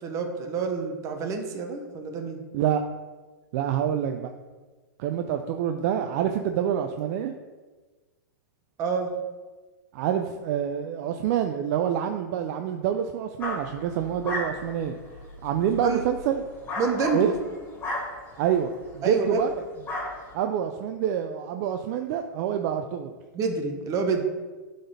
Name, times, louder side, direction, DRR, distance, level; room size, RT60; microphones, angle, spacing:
voice 1, 0.0-2.4 8.8-9.1 15.8-16.0 16.8-17.3 19.0-19.4 23.3-24.2, right 4 dB, 30° right, 3 dB, 1.0 m, -28 dB
voice 2, 3.5-4.3 5.0-7.3 9.9-15.0 15.4-16.4 17.1-17.3 18.4-19.5 20.3-23.1, right 9 dB, 45° right, 6 dB, 0.5 m, -27 dB
sound 1, 13.4-18.9 19.3-19.6 19.8-20.3, left 2 dB, 15° left, 2.4 m, -35 dB
11.5 x 4.0 x 3.4 m, 1.3 s
hypercardioid pair, 135°, 11 cm